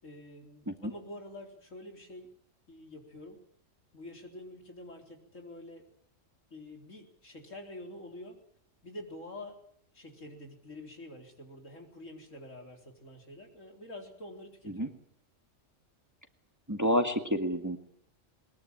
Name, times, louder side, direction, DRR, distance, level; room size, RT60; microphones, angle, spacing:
voice 1, 0.0-2.3 2.7-3.4 3.9-5.9 6.5-8.4 8.8-9.6 9.9-15.0, left 1 dB, 75° left, 2 dB, 4.6 m, -47 dB
voice 2, 16.7-17.8, equal, 15° right, 6 dB, 1.9 m, -29 dB
22.0 x 21.0 x 9.0 m, 0.65 s
omnidirectional pair, 1.3 m